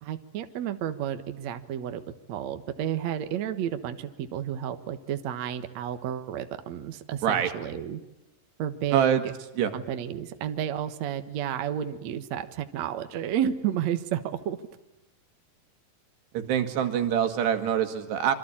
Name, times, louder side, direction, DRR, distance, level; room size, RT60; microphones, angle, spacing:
voice 1, 0.0-2.0 2.3-8.0 8.6-9.3 9.7-14.6, right 10 dB, 60° right, 8 dB, 1.9 m, -31 dB
voice 2, 16.3-18.4, right 9 dB, 75° right, 7 dB, 4.1 m, -24 dB
26.5 x 25.0 x 8.8 m, 1.0 s
omnidirectional pair, 4.9 m